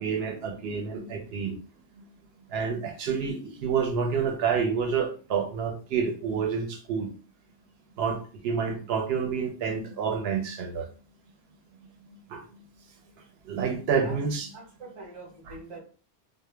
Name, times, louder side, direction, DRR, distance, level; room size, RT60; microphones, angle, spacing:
voice 1, 0.0-1.6 2.0-2.1 2.5-7.1 8.0-10.9 12.1-12.6 13.4-14.5 15.4-15.6, right 6 dB, 70° right, 3 dB, 0.8 m, -29 dB
voice 2, 14.5-15.8, right 3 dB, 30° right, -3 dB, 0.9 m, -44 dB
2.1 x 2.0 x 3.1 m, 0.38 s
omnidirectional pair, 1.1 m